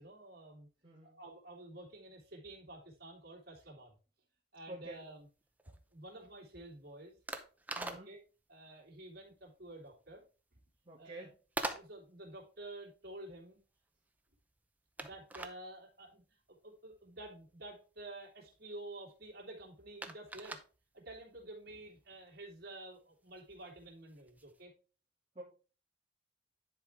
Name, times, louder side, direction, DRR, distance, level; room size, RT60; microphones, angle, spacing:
voice 1, 0.0-0.7 1.0-4.0 4.5-5.3 5.6-7.1 7.8-8.2 8.5-10.2 10.5-10.6 11.0-11.3 11.7-13.6 15.0-20.6 20.9-24.7, right 1 dB, 55° right, -3 dB, 2.9 m, -50 dB
voice 2, 4.7-5.0 7.8-8.1 10.9-11.3 25.3-25.4, right 1 dB, 30° right, -5 dB, 2.2 m, -48 dB
plastic trunking light, 4.9-24.6, right 2 dB, 10° right, 0.7 m, -48 dB
10.5 x 4.6 x 3.5 m, 0.35 s
head